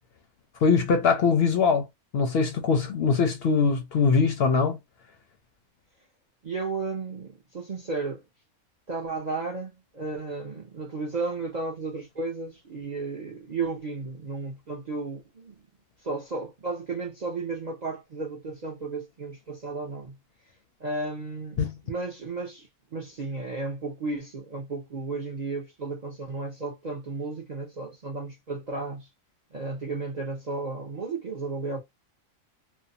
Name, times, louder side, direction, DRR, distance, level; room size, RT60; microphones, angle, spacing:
voice 1, 0.6-1.9 2.1-4.8 21.6-21.7, left 5 dB, 65° left, 0.7 m, -22 dB
voice 2, 6.4-8.2 8.9-15.6 16.0-20.2 20.8-29.1 29.5-31.8, right 3 dB, 45° right, 0.6 m, -33 dB
2.6 x 2.1 x 2.6 m
omnidirectional pair, 1.4 m